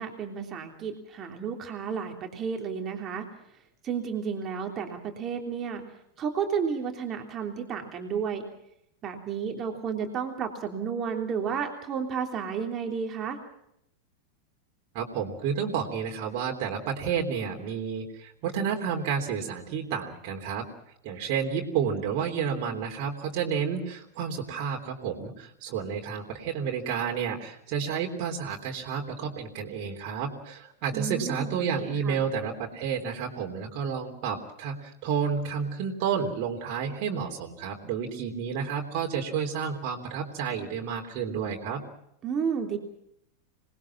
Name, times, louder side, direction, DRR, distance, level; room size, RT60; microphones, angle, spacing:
voice 1, 0.0-3.3 3.8-5.8 6.2-8.4 9.0-13.4 30.9-32.2 42.2-42.8, right 6 dB, 30° right, 3 dB, 3.2 m, -32 dB
voice 2, 14.9-20.7 21.0-41.8, right 7 dB, 45° right, 0 dB, 3.5 m, -31 dB
26.5 x 20.0 x 6.0 m, 0.75 s
figure-of-eight pair, 90°, 0 cm